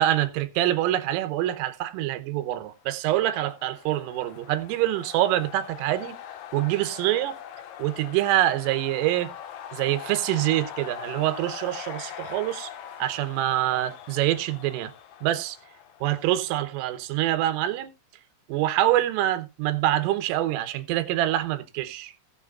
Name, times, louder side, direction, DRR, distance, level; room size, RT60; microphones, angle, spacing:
voice 1, 0.0-6.2 6.5-7.3 7.8-9.3 9.7-12.7 13.0-14.9 15.2-15.6 16.0-17.9 18.5-22.1, right 14 dB, 80° right, 3.5 m, -25 dB
sound 1, 3.0-16.7, left 10 dB, 70° left, 2.6 m, -42 dB
19.5 x 6.6 x 2.4 m
omnidirectional pair, 5.8 m